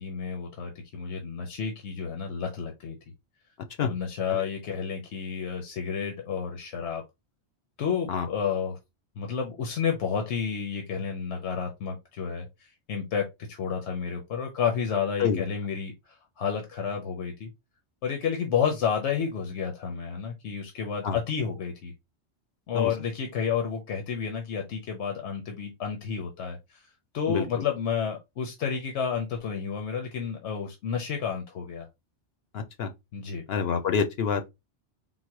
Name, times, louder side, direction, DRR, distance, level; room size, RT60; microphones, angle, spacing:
voice 1, 0.0-3.0 3.8-7.0 7.8-8.8 9.2-17.5 18.0-21.9 22.7-26.9 27.1-31.9 33.1-33.4, left 7 dB, 80° left, 1.1 m, -31 dB
voice 2, 27.3-27.6 32.5-32.9 33.5-34.5, left 6 dB, 65° left, 0.8 m, -27 dB
4.0 x 2.2 x 4.6 m
omnidirectional pair, 1.1 m